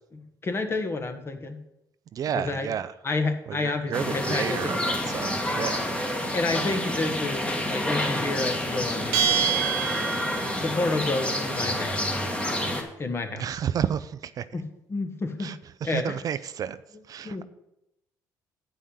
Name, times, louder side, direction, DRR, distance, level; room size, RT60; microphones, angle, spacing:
voice 1, 0.1-1.6 2.3-2.7 3.0-4.7 6.3-9.5 10.6-12.2 13.0-13.5 14.5-15.5 15.8-16.2 17.2-17.4, left 3 dB, 30° left, 6 dB, 1.4 m, -30 dB
voice 2, 2.1-2.9 3.5-5.9 10.4-10.7 13.3-14.5 15.4-16.8 17.1-17.4, right 9 dB, 50° right, 14 dB, 0.4 m, -31 dB
sound 1, 3.9-12.8, left 1 dB, 15° left, 1.7 m, -28 dB
Bell, 9.1-10.7, right 10 dB, 90° right, 1.5 m, -26 dB
8.5 x 5.5 x 6.5 m, 0.85 s
supercardioid pair, 85°, 8 cm